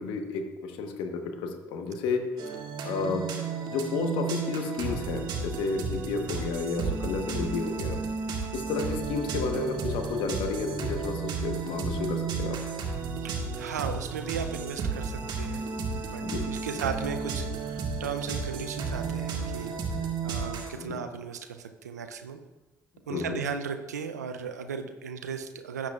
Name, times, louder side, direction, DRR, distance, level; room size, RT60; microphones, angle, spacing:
voice 1, 0.0-2.6 2.8-3.3 3.7-8.0 8.5-12.6 16.2-16.4 16.7-16.8 20.7-21.0 23.1-23.4, left 4 dB, 70° left, 5 dB, 1.2 m, -31 dB
sound 1, 2.4-20.7, right 5 dB, 60° right, 1.7 m, -33 dB
voice 2, 13.2-15.6 16.1-19.7 20.2-22.4 23.1-25.9, right 6 dB, 90° right, 8 dB, 0.5 m, -36 dB
16.0 x 7.4 x 2.4 m, 1.1 s
hypercardioid pair, 50°, 9 cm